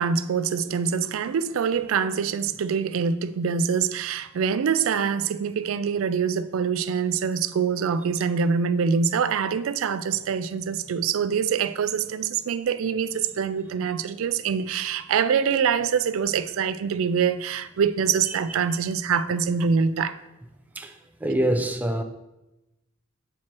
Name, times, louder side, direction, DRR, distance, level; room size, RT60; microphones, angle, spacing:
voice 1, 0.0-20.2, right 6 dB, 70° right, 0.3 m, -25 dB
voice 2, 20.8-22.0, right 1 dB, 10° right, 0.4 m, -25 dB
8.5 x 4.5 x 2.9 m
head